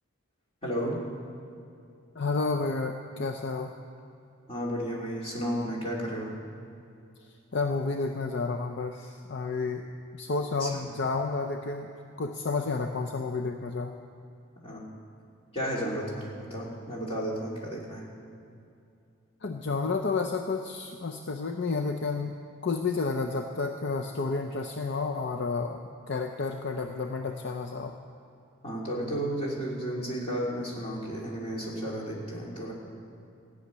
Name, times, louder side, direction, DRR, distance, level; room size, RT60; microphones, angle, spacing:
voice 1, 0.6-1.1 4.5-6.3 10.6-10.7 14.6-14.8 15.5-18.1 28.6-32.7, equal, 25° left, -5 dB, 2.7 m, -33 dB
voice 2, 2.1-3.7 7.5-9.8 10.1-11.9 12.2-13.9 19.4-22.3 22.6-25.8 26.1-28.0, left 4 dB, 50° left, 4 dB, 0.5 m, -30 dB
14.5 x 6.5 x 9.4 m, 2.5 s
head